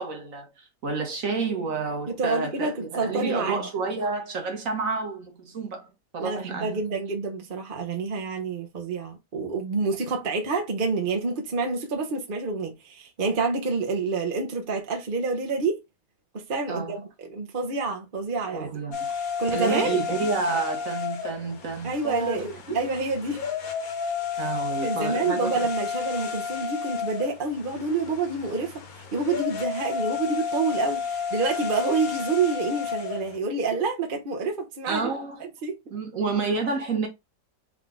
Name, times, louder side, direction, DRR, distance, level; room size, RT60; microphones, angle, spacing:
voice 1, 0.0-5.9 6.1-6.8 16.7-17.0 18.5-19.1 19.5-22.6 24.4-25.6 34.9-35.4 35.9-37.1, right 4 dB, 55° right, 1.4 m, -29 dB
voice 2, 2.1-3.7 6.2-15.8 16.3-18.7 19.4-20.0 21.8-23.4 24.3-24.5 24.8-28.8 29.1-35.1 35.4-35.8, right 4 dB, 35° right, 1.0 m, -28 dB
sound 1, 18.9-33.4, left 6 dB, 60° left, 1.3 m, -32 dB
3.8 x 3.6 x 3.7 m
omnidirectional pair, 1.9 m